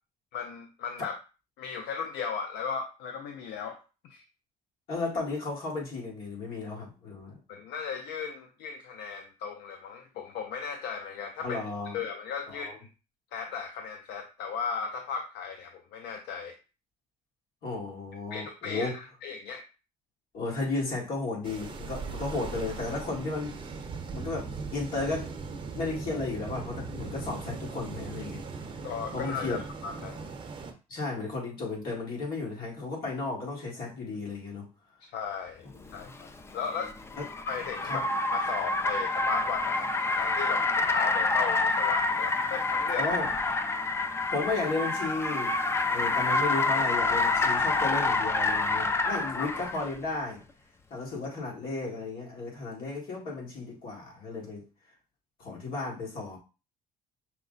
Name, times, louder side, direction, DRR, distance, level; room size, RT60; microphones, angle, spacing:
voice 1, 0.3-1.2 1.6-3.8 4.1-4.2 7.5-11.6 11.9-12.9 13.3-16.6 18.3-19.6 28.8-30.3 35.1-35.6 35.9-36.9 37.5-43.1 43.4-43.5 46.1-46.7 49.4-49.5, left 6 dB, 80° left, 0.5 m, -36 dB
voice 2, 4.9-7.4 11.4-12.0 12.5-12.8 17.6-19.0 20.3-23.6 24.1-25.3 25.7-28.5 29.1-29.6 30.9-34.7 35.7-36.1 37.2-37.3 37.9-38.0 42.9-43.3 44.3-45.6 45.9-50.4 50.9-54.7 55.4-56.4, left 3 dB, 60° left, 1.9 m, -34 dB
sound 1, 21.4-30.7, right 4 dB, 30° right, 0.8 m, -39 dB
Car, 35.9-49.9, left 3 dB, 15° left, 0.4 m, -27 dB
5.7 x 2.1 x 3.8 m
cardioid pair, 110°, 17 cm